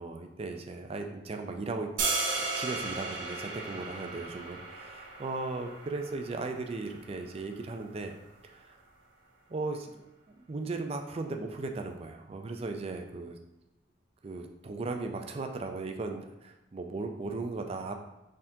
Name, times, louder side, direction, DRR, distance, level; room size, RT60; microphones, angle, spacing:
voice 1, 0.0-1.9 2.5-8.1 8.4-8.8 9.5-13.4 14.2-17.9, right 3 dB, 30° right, 4 dB, 0.4 m, -37 dB
sound 1, 2.0-8.1, right 3 dB, 85° right, 1.0 m, -36 dB
4.4 x 3.7 x 2.7 m, 0.94 s
head